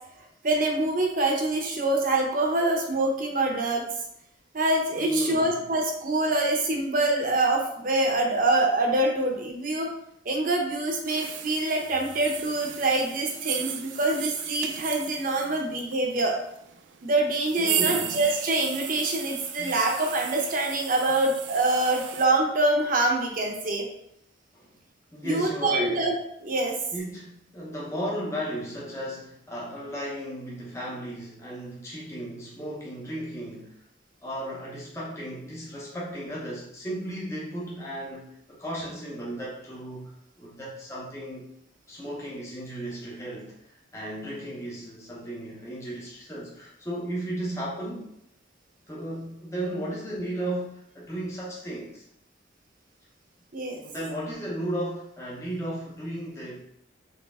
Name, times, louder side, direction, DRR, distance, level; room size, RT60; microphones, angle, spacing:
voice 1, 0.4-3.9 4.5-9.9 10.2-16.3 17.0-23.9 25.2-26.1 26.4-26.7 53.5-53.8, right 2 dB, 45° right, 1 dB, 0.7 m, -25 dB
voice 2, 4.9-5.6 17.6-18.2 19.6-19.8 24.5-24.8 25.1-26.0 26.9-33.7 34.2-41.5 41.9-43.5 43.9-48.1 48.9-52.0 53.7-56.6, right 1 dB, 15° left, -5 dB, 0.7 m, -35 dB
sound 1, 11.1-22.3, right 9 dB, 75° right, 0.4 m, -35 dB
4.1 x 3.2 x 3.5 m, 0.75 s
head